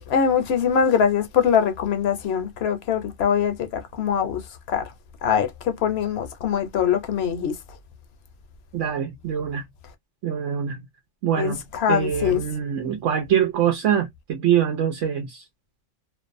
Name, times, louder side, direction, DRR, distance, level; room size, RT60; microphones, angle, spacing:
voice 1, 0.1-4.4 4.7-4.9 5.2-7.5 11.4-12.4, left 7 dB, 65° left, 0.8 m, -22 dB
voice 2, 8.7-9.7 10.2-10.9 11.2-11.6 11.9-15.4, right 9 dB, 85° right, 1.0 m, -24 dB
2.5 x 2.0 x 2.4 m
omnidirectional pair, 1.2 m